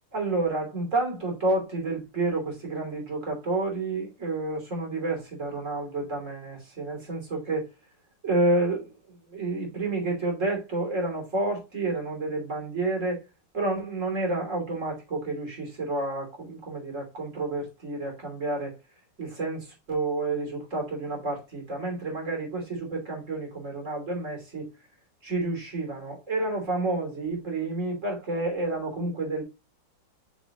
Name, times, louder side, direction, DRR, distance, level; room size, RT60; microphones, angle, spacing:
voice 1, 0.1-7.7 8.2-8.9 9.3-13.2 13.5-18.7 19.2-24.7 25.2-29.4, right 2 dB, 35° right, 3.2 m, -29 dB
6.4 x 6.1 x 2.9 m
omnidirectional pair, 2.3 m